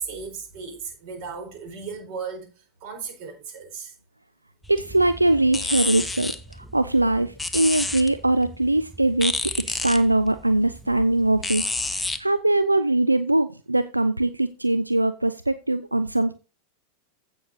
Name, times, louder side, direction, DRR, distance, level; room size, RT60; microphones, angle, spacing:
voice 1, 0.0-3.9, right 5 dB, 45° right, 4.5 m, -36 dB
sound 1, 4.6-12.2, left 2 dB, 5° left, 0.9 m, -31 dB
voice 2, 4.7-9.3 9.7-16.3, right 2 dB, 85° right, 0.5 m, -22 dB
15.5 x 6.5 x 2.8 m
figure-of-eight pair, 90°, 0 cm